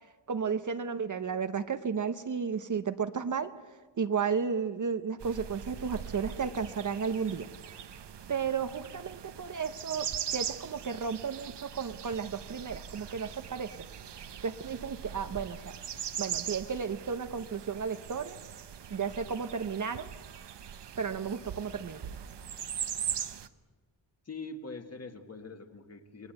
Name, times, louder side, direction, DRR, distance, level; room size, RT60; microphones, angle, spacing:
voice 1, 0.0-7.9 8.3-13.9 14.4-15.7 16.2-18.4 18.9-20.1 21.0-22.0, right 6 dB, 40° right, 10 dB, 0.8 m, -33 dB
sound 1, 5.2-23.5, right 9 dB, 60° right, 1.0 m, -41 dB
voice 2, 24.3-26.3, left 3 dB, 35° left, 6 dB, 1.8 m, -43 dB
28.5 x 21.0 x 8.0 m, 1.4 s
wide cardioid pair, 170°, 46 cm